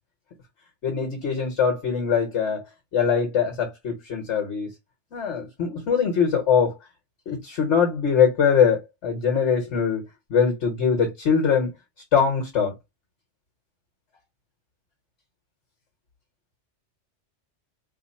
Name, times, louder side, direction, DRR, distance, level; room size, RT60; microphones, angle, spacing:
voice 1, 0.8-2.6 2.9-4.7 5.1-6.7 7.3-10.0 10.3-11.7 12.1-12.7, left 6 dB, 75° left, 1.4 m, -22 dB
3.2 x 2.0 x 4.2 m
omnidirectional pair, 1.2 m